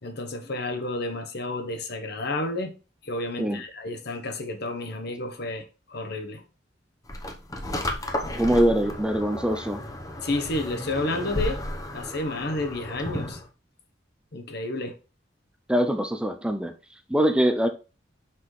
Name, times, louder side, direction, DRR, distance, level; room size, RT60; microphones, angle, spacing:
voice 1, 0.0-2.8 3.0-6.4 10.2-11.6 11.9-13.4 14.3-15.0, left 2 dB, 60° left, 1.1 m, -31 dB
sound 1, 7.1-13.5, left 1 dB, 20° left, 0.8 m, -33 dB
voice 2, 8.3-9.8 15.7-16.7 17.1-17.7, equal, 5° right, 0.5 m, -23 dB
5.8 x 5.7 x 3.2 m
head